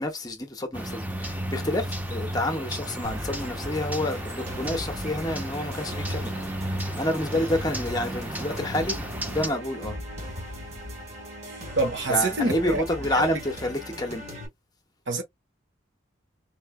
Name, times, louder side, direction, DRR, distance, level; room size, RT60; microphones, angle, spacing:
voice 1, 0.0-9.0 9.3-10.0 12.1-14.2, left 1 dB, 20° left, 0.8 m, -29 dB
sound 1, 0.7-9.5, right 1 dB, 10° right, 0.6 m, -33 dB
sound 2, 3.0-14.5, equal, 35° right, 1.4 m, -39 dB
voice 2, 11.8-12.8 13.1-13.2 15.1-15.2, right 3 dB, 60° right, 1.1 m, -25 dB
4.3 x 3.2 x 2.2 m
head